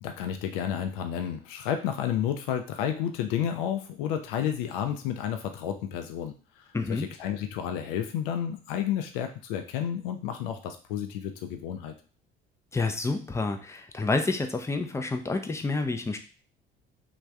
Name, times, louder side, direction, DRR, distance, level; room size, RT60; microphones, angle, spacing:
voice 1, 0.0-6.3 6.9-11.9, left 9 dB, 65° left, 6 dB, 0.5 m, -31 dB
voice 2, 6.7-7.1 12.7-16.2, left 3 dB, 10° left, 5 dB, 0.5 m, -29 dB
3.3 x 2.4 x 3.2 m, 0.38 s
figure-of-eight pair, 50°, 29 cm